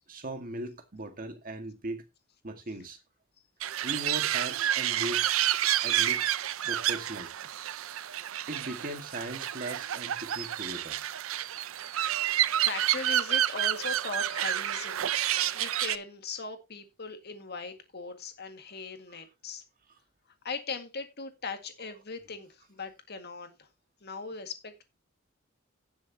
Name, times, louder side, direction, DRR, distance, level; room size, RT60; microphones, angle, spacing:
voice 1, 0.1-2.0 2.4-3.0 3.8-5.4 5.8-6.3 6.6-7.3 8.5-11.0, right 1 dB, 45° right, 1.7 m, -38 dB
sound 1, 3.6-16.0, right 12 dB, 80° right, 0.5 m, -29 dB
voice 2, 11.7-12.2 12.5-15.0 15.5-19.6 20.4-23.7 24.0-24.8, left 4 dB, 50° left, 1.9 m, -39 dB
17.0 x 7.1 x 2.8 m
head